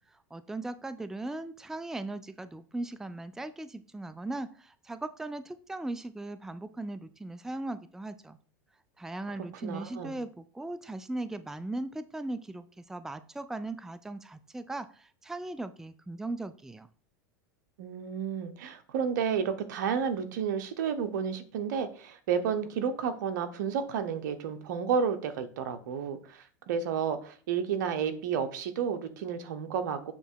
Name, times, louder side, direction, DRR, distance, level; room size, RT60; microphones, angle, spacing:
voice 1, 0.3-8.4 9.0-16.9, right 2 dB, 5° right, 13 dB, 0.4 m, -38 dB
voice 2, 9.6-10.2 17.8-30.1, right 7 dB, 75° right, 10 dB, 1.0 m, -31 dB
7.3 x 3.3 x 4.6 m, 0.43 s
hypercardioid pair, 105°, 10 cm